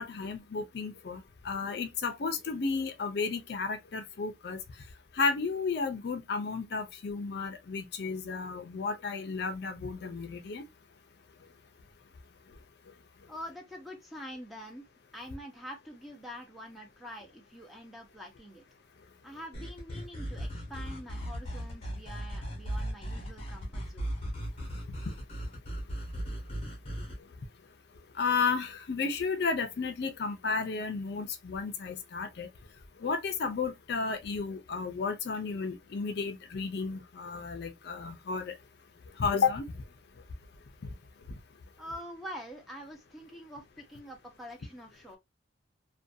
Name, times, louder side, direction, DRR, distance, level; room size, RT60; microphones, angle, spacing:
voice 1, 0.0-4.6 5.1-10.6 28.1-32.5 33.0-38.5 39.2-39.6, left 5 dB, 55° left, 0.4 m, -32 dB
voice 2, 13.3-14.8 15.1-18.6 19.2-24.2 41.8-45.2, equal, ahead, 0.6 m, -45 dB
sound 1, 19.5-27.2, equal, 30° left, 0.8 m, -37 dB
2.5 x 2.2 x 2.5 m
head